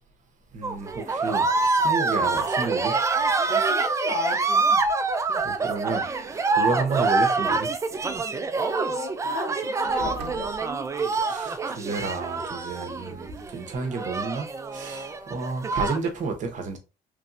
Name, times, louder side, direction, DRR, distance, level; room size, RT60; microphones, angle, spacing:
voice 1, 0.5-3.0 5.4-6.1 6.3-7.7 11.2-16.8, right 4 dB, 45° right, 0.8 m, -31 dB
sound 1, 0.6-16.1, right 3 dB, 20° right, 0.3 m, -26 dB
voice 2, 3.5-4.8 8.6-10.5, left 4 dB, 85° left, 1.1 m, -35 dB
sound 2, 4.8-5.4 6.2-7.1 8.9-9.0 9.3-9.5 9.8-11.3 12.4-12.5 13.1-13.4, right 2 dB, 75° right, 0.6 m, -44 dB
3.1 x 2.6 x 2.4 m
cardioid pair, 110°, 17 cm